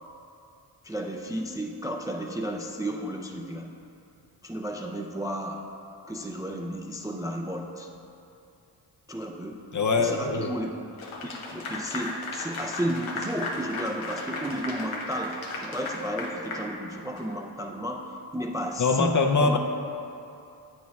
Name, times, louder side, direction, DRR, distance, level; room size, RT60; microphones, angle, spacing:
voice 1, 0.8-3.7 4.4-5.7 6.1-7.9 9.1-9.6 10.0-10.8 11.2-19.6, equal, 10° right, 1 dB, 0.3 m, -33 dB
voice 2, 9.7-10.5 18.8-19.6, left 4 dB, 40° left, 4 dB, 0.5 m, -23 dB
Clapping / Applause, 11.0-17.3, left 2 dB, 85° left, 0.8 m, -35 dB
8.2 x 6.2 x 2.3 m, 2.7 s
cardioid pair, 45°, 47 cm